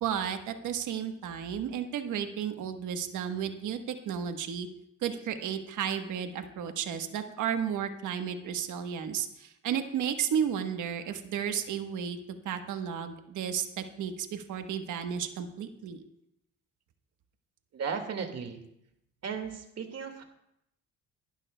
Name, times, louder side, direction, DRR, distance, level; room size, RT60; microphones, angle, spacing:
voice 1, 0.0-4.7 5.0-12.2 12.4-16.0, right 8 dB, 80° right, 7 dB, 1.2 m, -33 dB
voice 2, 17.7-18.6 19.2-20.2, right 6 dB, 55° right, 5 dB, 2.0 m, -35 dB
22.5 x 11.5 x 2.2 m, 0.80 s
cardioid pair, 90°, 30 cm